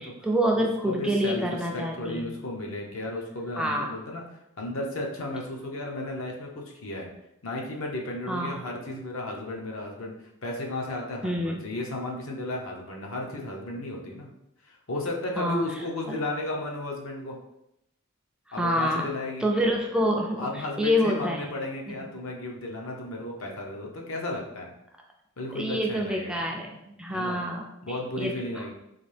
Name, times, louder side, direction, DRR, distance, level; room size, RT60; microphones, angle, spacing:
voice 1, 0.0-2.3 3.6-3.9 8.3-8.6 11.2-11.7 15.4-15.6 18.6-19.1 19.4-20.5 20.8-21.5 25.5-27.7 28.2-28.4, equal, 5° right, -1 dB, 0.3 m, -27 dB
voice 2, 0.5-7.1 7.4-14.3 14.6-17.4 18.5-19.5 20.4-24.7 25.4-26.4 27.1-27.4 27.8-28.7, left 1 dB, 65° left, 0 dB, 0.7 m, -34 dB
3.9 x 2.7 x 3.3 m, 0.82 s
head